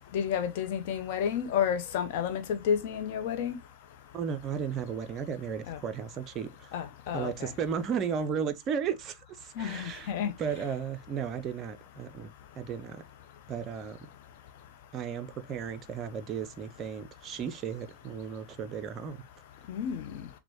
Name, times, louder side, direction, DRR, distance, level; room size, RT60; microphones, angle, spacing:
voice 1, 0.1-3.6 5.7-5.8 6.7-7.5 9.6-10.3 19.7-20.1, left 8 dB, 50° left, 0.7 m, -31 dB
voice 2, 4.1-6.7 7.1-10.1 10.4-13.0 13.5-14.1 14.9-19.2, right 7 dB, 30° right, 0.4 m, -35 dB
5.9 x 2.1 x 2.9 m
figure-of-eight pair, 90°, 0 cm